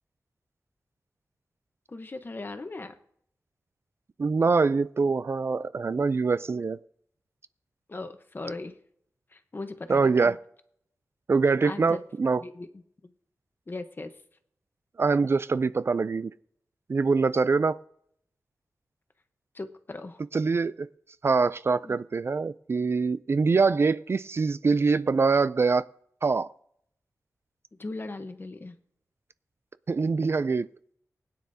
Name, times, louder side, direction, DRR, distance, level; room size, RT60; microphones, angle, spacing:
voice 1, 1.9-2.9 7.9-8.8 9.3-10.4 11.6-12.0 12.4-12.7 13.0-13.1 13.7-14.1 19.5-20.2 21.8-22.0 27.8-28.8, left 2 dB, 35° left, 1.0 m, -38 dB
voice 2, 4.2-6.8 9.9-10.4 11.3-12.4 15.0-16.3 16.9-17.8 20.3-20.9 21.2-25.9 26.2-26.5 29.9-30.7, right 4 dB, 45° right, 0.3 m, -24 dB
20.0 x 9.4 x 2.7 m
wide cardioid pair, 105°, 6 cm